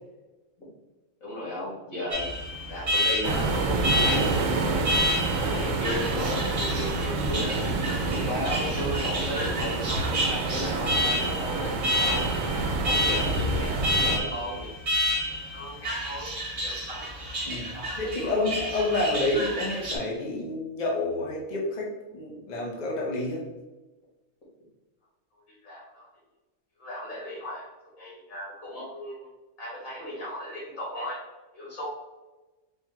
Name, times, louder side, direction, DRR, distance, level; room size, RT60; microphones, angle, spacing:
voice 1, 1.2-2.3 2.7-4.9 5.3-7.7 8.0-12.6 12.8-14.7 15.3-16.3 16.6-17.3 17.7-18.0 18.2-18.3 25.5-26.1 26.8-29.3 29.6-31.2 31.5-31.9, equal, 85° left, -5 dB, 2.1 m, -35 dB
Alarm, 2.1-20.0, equal, 60° right, 1.3 m, -30 dB
sound 1, 3.2-14.2, right 3 dB, 80° right, 1.0 m, -28 dB
voice 2, 17.4-21.9 22.1-23.5, left 2 dB, 35° left, -2 dB, 1.0 m, -29 dB
4.6 x 2.5 x 4.4 m, 1.1 s
omnidirectional pair, 1.4 m